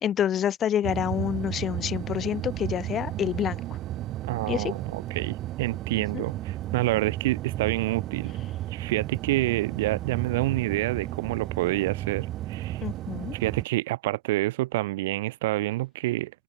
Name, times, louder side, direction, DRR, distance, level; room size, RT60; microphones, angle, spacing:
voice 1, 0.0-3.6 4.5-4.7 6.1-6.2 12.8-13.4, left 10 dB, 20° left, 0.9 m, -27 dB
sound 1, 0.8-13.6, right 14 dB, 25° right, 3.4 m, -34 dB
voice 2, 4.3-8.4 8.7-12.8 13.3-16.3, right 18 dB, 50° right, 2.1 m, -28 dB
open air
supercardioid pair, 175°, 0 cm